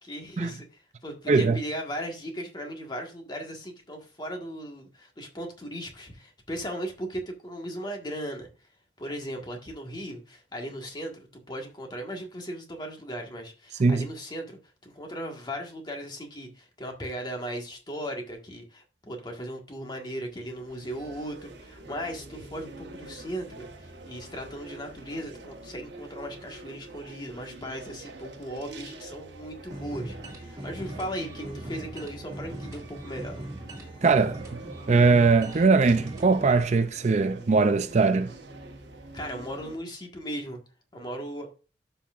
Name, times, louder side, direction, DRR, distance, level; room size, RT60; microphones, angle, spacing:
voice 1, 0.0-8.7 9.0-33.4 39.1-40.6 40.9-41.5, equal, 25° left, 1.6 m, -37 dB
sound 1, 20.0-39.8, right 2 dB, 80° right, 1.3 m, -46 dB
sound 2, 29.7-36.6, right 1 dB, 20° right, 2.2 m, -40 dB
voice 2, 34.0-34.4 34.9-38.3, right 4 dB, 40° right, 0.4 m, -21 dB
12.5 x 5.6 x 2.5 m
head